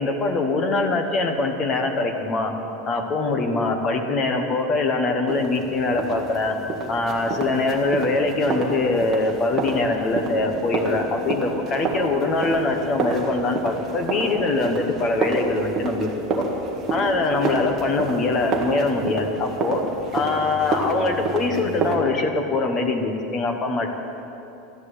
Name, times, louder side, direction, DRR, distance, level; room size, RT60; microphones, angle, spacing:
voice 1, 0.0-2.5 2.8-6.6 6.9-16.1 16.9-19.8 20.1-23.9, left 3 dB, 25° left, 5 dB, 1.2 m, -23 dB
sound 1, 5.3-22.0, right 3 dB, 20° right, 1.7 m, -29 dB
13.0 x 10.5 x 8.3 m, 2.9 s
supercardioid pair, 170°, 0 cm